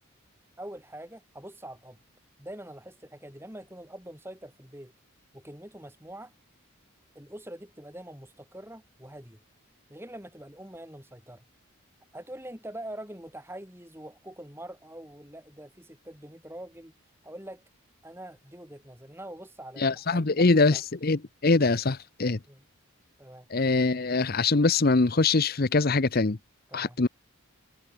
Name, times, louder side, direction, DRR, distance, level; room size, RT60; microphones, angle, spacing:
voice 1, 0.6-2.0 2.4-4.9 5.3-6.3 7.1-9.4 9.9-11.4 12.1-16.9 17.2-17.6 18.0-20.8 22.5-22.6 23.2-23.5 26.7-27.0, right 1 dB, 10° right, 7.3 m, -44 dB
voice 2, 19.8-22.4 23.5-26.4 26.7-27.1, left 3 dB, 45° left, 0.8 m, -23 dB
head